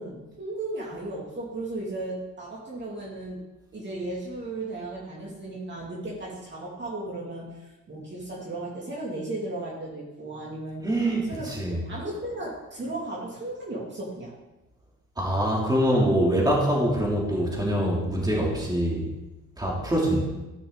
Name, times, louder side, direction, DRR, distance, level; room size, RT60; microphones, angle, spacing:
voice 1, 0.0-3.4 3.7-10.9 11.3-14.3, right 2 dB, 35° right, -4 dB, 2.6 m, -35 dB
voice 2, 10.8-11.8 15.2-19.1 19.6-20.3, right 1 dB, 15° right, -3 dB, 3.0 m, -24 dB
13.5 x 5.8 x 4.0 m, 1.0 s
cardioid pair, 90°, 30 cm